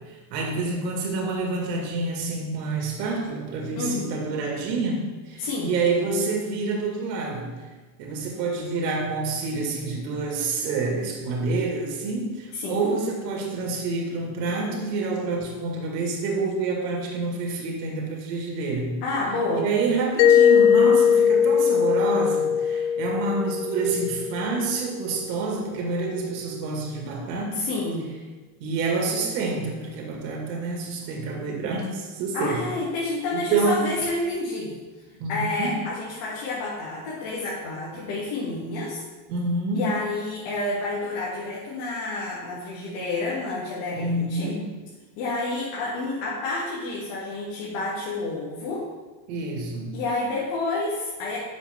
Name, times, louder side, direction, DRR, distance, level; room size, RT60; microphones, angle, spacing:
voice 1, 0.1-7.5 8.0-18.9 19.6-27.6 28.6-32.6 33.5-34.0 35.2-35.8 39.3-39.9 43.9-44.7 49.3-50.0, right 3 dB, 85° right, 0 dB, 2.4 m, -28 dB
voice 2, 3.8-4.2 5.4-5.7 12.5-12.9 19.0-19.7 22.7-22.8 27.5-28.1 32.3-34.8 35.3-39.0 39.7-44.5 45.2-48.8 49.9-51.4, left 2 dB, 75° left, -7 dB, 3.0 m, -29 dB
Mallet percussion, 20.2-24.8, left 8 dB, 35° left, 0.4 m, -20 dB
11.5 x 7.1 x 3.7 m, 1.3 s
cardioid pair, 170°, 48 cm